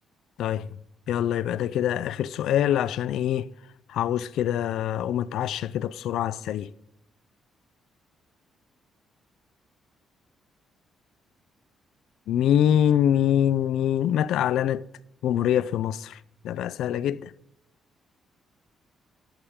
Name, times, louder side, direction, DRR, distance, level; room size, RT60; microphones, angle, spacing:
voice 1, 1.1-3.5 3.9-6.7 12.3-14.8 15.2-16.2 16.4-17.3, left 10 dB, 85° left, 0.5 m, -24 dB
13.0 x 11.5 x 3.7 m
cardioid pair, 100°, 0 cm